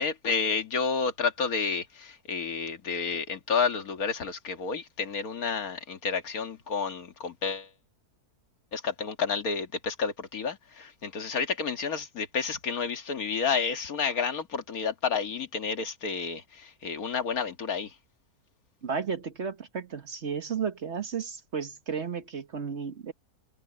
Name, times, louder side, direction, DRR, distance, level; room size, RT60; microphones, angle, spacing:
voice 1, 0.0-7.7 8.7-17.9, left 5 dB, 65° left, 2.2 m, -30 dB
voice 2, 18.8-23.1, right 6 dB, 50° right, 1.4 m, -33 dB
open air
omnidirectional pair, 1.6 m